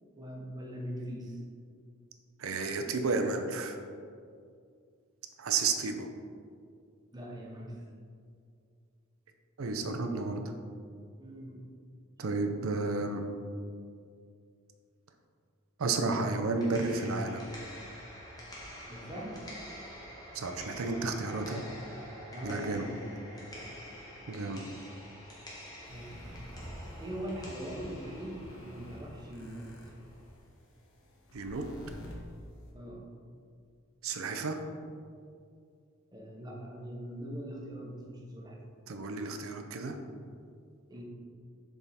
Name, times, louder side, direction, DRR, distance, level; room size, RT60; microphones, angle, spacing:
voice 1, 0.2-1.4 7.1-7.8 11.2-11.6 18.9-19.4 22.3-23.8 25.9-26.2 27.0-29.7 32.7-33.0 36.1-38.6 40.9-41.0, equal, 20° right, -2 dB, 0.9 m, -42 dB
voice 2, 2.4-3.8 5.4-6.1 9.6-10.4 12.2-13.2 15.8-17.5 20.3-21.6 22.4-22.9 24.3-24.6 31.3-31.7 34.0-34.6 38.9-40.0, right 3 dB, 75° right, 5 dB, 0.5 m, -32 dB
sound 1, 16.4-30.4, equal, 20° left, 1.2 m, -47 dB
sound 2, 25.8-32.7, equal, 65° left, 1.2 m, -50 dB
7.0 x 3.6 x 4.1 m, 2.3 s
head